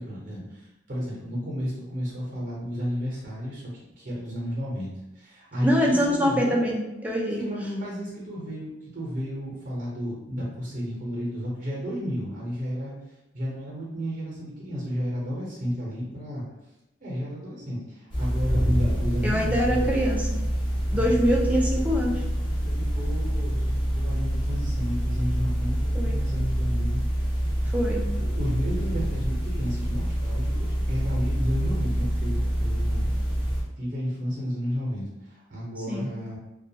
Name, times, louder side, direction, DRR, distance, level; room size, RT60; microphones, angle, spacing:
voice 1, 0.0-3.6 4.0-4.9 5.1-6.5 7.4-12.9 13.3-16.4 17.0-19.9 20.9-21.1 22.6-27.0 28.2-33.1 33.8-36.4, equal, 50° right, -5 dB, 0.8 m, -32 dB
voice 2, 5.6-7.4 19.2-20.4 20.9-22.2 25.9-26.2 27.7-28.1 35.9-36.1, equal, 10° right, -3 dB, 0.4 m, -24 dB
sound 1, 18.1-33.6, equal, 25° left, 0.7 m, -26 dB
2.3 x 2.3 x 2.7 m, 0.97 s
head